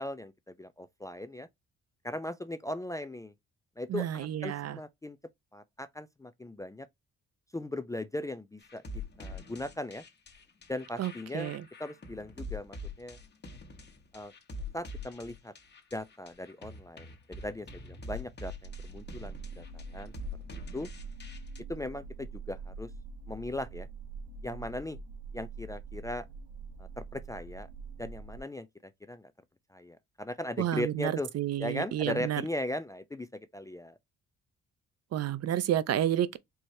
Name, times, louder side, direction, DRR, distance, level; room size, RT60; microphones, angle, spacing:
voice 1, 0.0-1.5 2.0-3.3 3.8-5.2 5.5-6.9 7.5-8.8 9.2-10.0 10.7-11.5 11.8-13.2 14.1-14.3 14.7-15.5 15.9-20.1 20.5-20.9 21.7-22.9 23.3-23.9 24.4-25.0 25.3-26.3 26.8-27.7 28.0-29.3 29.7-31.3 31.6-34.0, left 1 dB, 10° left, 0.4 m, -38 dB
voice 2, 3.9-4.8 11.0-11.6 30.6-32.4 35.1-36.4, right 11 dB, 55° right, 0.6 m, -30 dB
sound 1, 8.6-21.6, left 2 dB, 35° left, 1.2 m, -44 dB
sound 2, 18.6-28.4, right 4 dB, 75° right, 1.0 m, -44 dB
4.6 x 3.0 x 2.6 m
cardioid pair, 90°, 30 cm